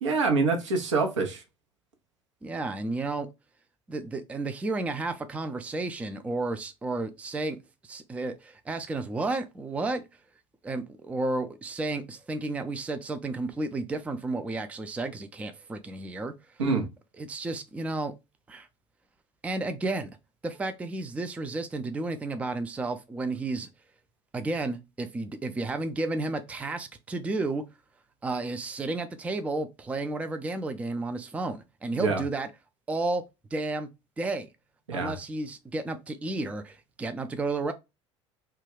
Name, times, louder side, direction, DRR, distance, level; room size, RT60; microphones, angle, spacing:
voice 1, 0.0-1.4 16.6-16.8 31.9-32.2 34.9-35.1, right 4 dB, 75° right, 0.7 m, -25 dB
voice 2, 2.4-3.3 3.9-7.6 7.8-10.0 10.6-16.3 17.2-18.1 18.5-18.7 19.4-20.1 20.4-23.7 24.3-27.6 28.2-32.5 32.9-33.2 33.5-33.9 34.2-34.5 34.9-37.7, right 2 dB, 10° right, 0.3 m, -32 dB
2.3 x 2.2 x 3.3 m
figure-of-eight pair, 65°, 16 cm